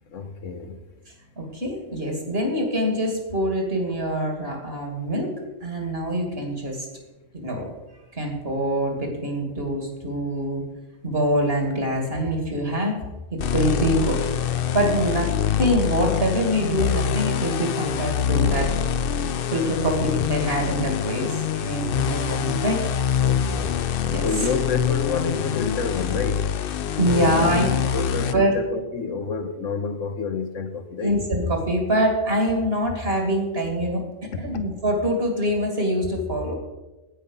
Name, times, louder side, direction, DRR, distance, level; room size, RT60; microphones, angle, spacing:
voice 1, 0.1-0.8 1.4-1.5 23.2-23.8 24.2-26.5 27.1-31.2 34.3-34.5, left 5 dB, 80° left, 1.4 m, -29 dB
voice 2, 1.4-5.3 5.6-6.9 7.3-7.7 8.2-10.7 11.0-12.9 13.5-14.2 14.5-15.3 15.6-18.7 19.5-22.8 24.1-24.3 27.0-27.7 27.9-28.1 28.3-28.5 31.0-34.0 34.4-36.6, equal, 50° right, 2.6 m, -24 dB
sound 1, 13.4-28.3, left 8 dB, 60° left, 0.7 m, -25 dB
16.5 x 5.8 x 5.4 m
omnidirectional pair, 1.3 m